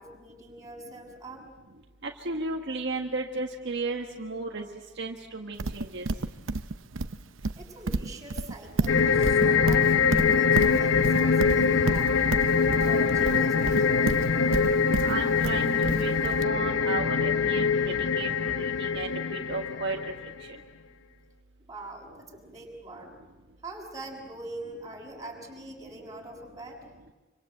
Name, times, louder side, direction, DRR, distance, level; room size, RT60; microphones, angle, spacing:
voice 1, 0.0-1.5 7.6-12.3 12.8-14.6 21.7-23.2 23.6-26.8, right 2 dB, 20° right, -2 dB, 6.4 m, -43 dB
voice 2, 2.0-4.6 5.0-6.1 15.0-17.6 18.2-20.0, right 3 dB, 60° right, 1 dB, 1.6 m, -34 dB
Livestock farm animals working animals, 5.6-16.4, right 3 dB, 80° right, 0.8 m, -30 dB
sound 1, 8.9-20.4, left 5 dB, 75° left, 0.8 m, -24 dB
27.0 x 25.5 x 7.9 m, 1.2 s
head